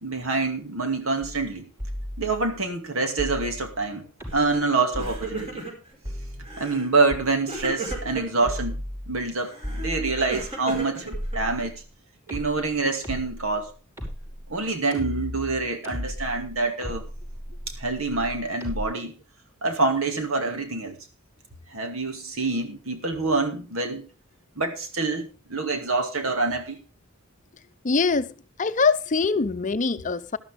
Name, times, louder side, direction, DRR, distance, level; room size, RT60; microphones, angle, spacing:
voice 1, 0.0-1.7 2.2-5.6 6.4-8.8 9.1-11.7 12.3-13.7 14.5-17.0 17.7-19.1 19.6-21.0 21.7-24.1 24.6-26.8, right 3 dB, 80° right, 2.4 m, -26 dB
sound 1, 1.2-1.5 1.8-2.6 3.2-3.8 4.2-4.6 4.9-5.6 6.0-6.7 7.1-7.3 7.9-8.2 8.5-9.3 9.6-10.5 11.1-11.9 12.3-18.9, equal, 15° right, 5.8 m, -35 dB
Crying sobbing, 4.3-4.6 4.9-5.9 6.4-6.9 7.5-8.5 9.4-11.6, right 3 dB, 30° right, 5.1 m, -36 dB
voice 2, 27.8-28.3 28.6-30.4, left 4 dB, 40° left, 0.7 m, -23 dB
12.5 x 12.5 x 3.6 m
head